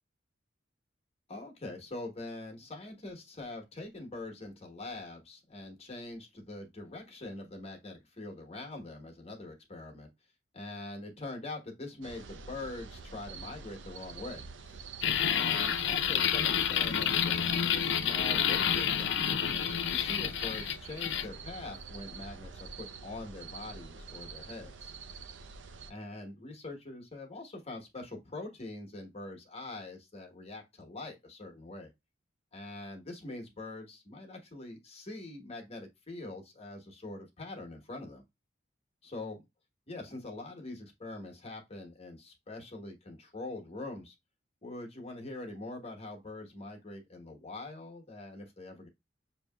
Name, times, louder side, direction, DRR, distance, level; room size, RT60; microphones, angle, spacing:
voice 1, 1.3-10.1 10.5-14.8 15.3-19.6 19.9-24.9 25.9-31.9 32.5-38.2 39.0-39.4 39.9-44.1 44.6-48.9, left 2 dB, 35° left, 1.1 m, -43 dB
sound 1, 12.0-25.9, right 4 dB, 75° right, 0.5 m, -46 dB
sound 2, 15.0-21.3, left 9 dB, 70° left, 0.5 m, -29 dB
6.3 x 2.8 x 2.2 m
head